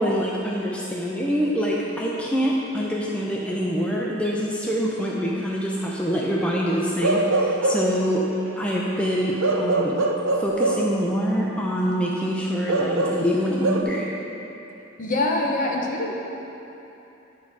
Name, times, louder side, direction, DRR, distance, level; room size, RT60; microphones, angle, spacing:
voice 1, 0.0-8.3 8.6-10.1 10.4-14.1, equal, 5° left, -4 dB, 0.5 m, -25 dB
Bark / Livestock farm animals working animals, 7.0-8.0 9.4-10.9 12.7-13.8, right 2 dB, 75° right, 0.7 m, -23 dB
voice 2, 15.0-16.1, left 2 dB, 40° left, 0 dB, 0.9 m, -24 dB
10.5 x 3.9 x 6.0 m, 3.0 s
head